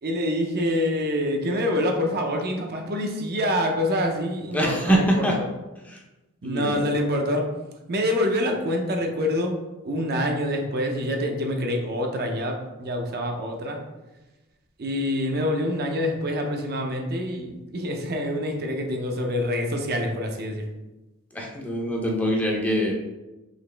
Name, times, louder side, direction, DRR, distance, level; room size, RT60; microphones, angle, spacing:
voice 1, 0.0-5.0 6.4-7.5 7.9-9.6 9.8-13.8 14.8-20.6, left 1 dB, 45° right, 2 dB, 0.6 m, -26 dB
voice 2, 4.5-5.4 5.8-6.0 6.4-6.8 21.3-22.9, equal, 5° left, -1 dB, 0.5 m, -24 dB
4.0 x 2.9 x 3.3 m, 1.1 s
head